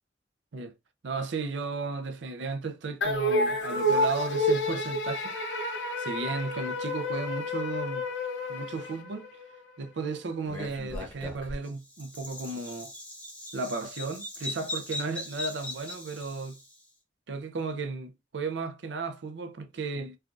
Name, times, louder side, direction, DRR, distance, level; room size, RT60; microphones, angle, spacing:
voice 1, 1.0-5.3 6.0-8.0 8.5-9.3 9.8-12.9 13.5-16.6 17.3-20.2, right 4 dB, 75° right, 0.5 m, -34 dB
sound 1, 3.0-9.6, left 1 dB, 90° left, 0.7 m, -29 dB
Bird vocalization bird call bird song, 10.4-16.7, left 2 dB, 10° left, 0.8 m, -39 dB
3.2 x 2.3 x 2.5 m
head